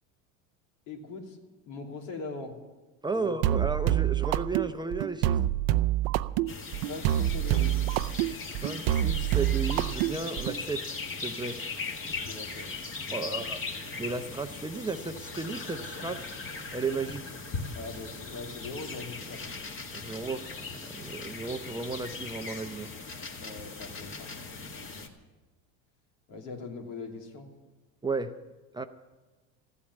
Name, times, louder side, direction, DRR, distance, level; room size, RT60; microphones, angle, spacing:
voice 1, 0.9-2.5 3.1-3.4 6.9-7.8 12.1-12.7 13.2-13.4 17.7-19.6 23.4-24.3 26.3-27.5, left 3 dB, 80° left, 1 dB, 3.0 m, -41 dB
voice 2, 3.0-5.4 8.6-11.6 13.1-13.6 14.0-16.2 16.7-17.2 19.9-20.7 21.0-22.9 28.0-28.3 28.7-28.8, right 3 dB, 10° right, 7 dB, 0.6 m, -34 dB
sound 1, 3.4-10.6, right 13 dB, 65° right, 0.5 m, -27 dB
sound 2, 6.5-25.1, left 4 dB, 30° left, 1.9 m, -39 dB
15.0 x 8.5 x 9.7 m, 1.2 s
supercardioid pair, 110°, 39 cm